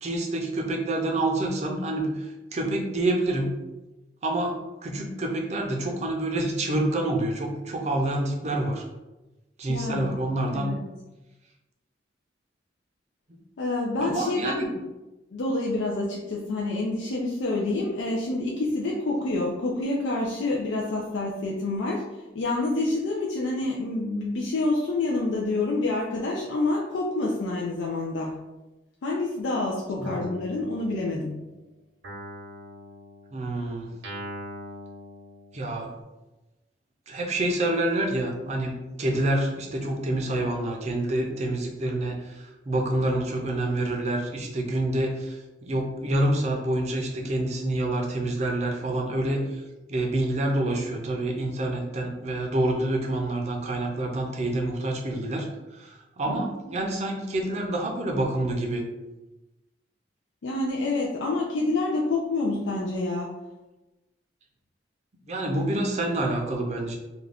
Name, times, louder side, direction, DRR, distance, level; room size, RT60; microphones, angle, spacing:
voice 1, 0.0-3.5 4.2-4.6 4.8-8.8 9.6-10.7 13.3-13.4 14.0-14.7 30.0-30.2 33.3-33.9 35.5-35.9 37.1-38.7 39.0-49.6 49.9-55.5 55.7-58.8 65.3-67.0, right 1 dB, 35° right, 2 dB, 0.5 m, -27 dB
voice 2, 9.7-10.1 10.5-10.8 13.6-14.8 15.3-22.0 22.3-28.4 29.0-31.4 56.3-56.5 60.4-63.3, left 2 dB, 80° left, -3 dB, 0.4 m, -27 dB
Guitar, 30.0-31.5 32.0-35.9, left 1 dB, 75° right, 0.7 m, -42 dB
2.4 x 2.2 x 3.4 m, 1.0 s
head